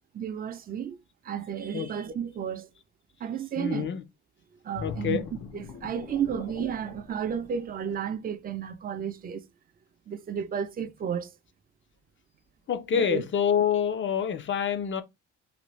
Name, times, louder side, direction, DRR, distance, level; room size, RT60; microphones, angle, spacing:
voice 1, 0.1-1.0 1.2-2.7 3.2-3.9 4.6-5.2 5.5-9.4 10.1-11.3 12.9-13.2, right 8 dB, 30° right, 0.4 m, -32 dB
voice 2, 3.6-4.0 4.8-5.3 12.7-15.0, left 8 dB, 40° left, 0.6 m, -27 dB
sound 1, 4.7-8.3 8.8-9.0, left 5 dB, 75° left, 0.7 m, -41 dB
2.6 x 2.5 x 3.0 m
cardioid pair, 90°, 30 cm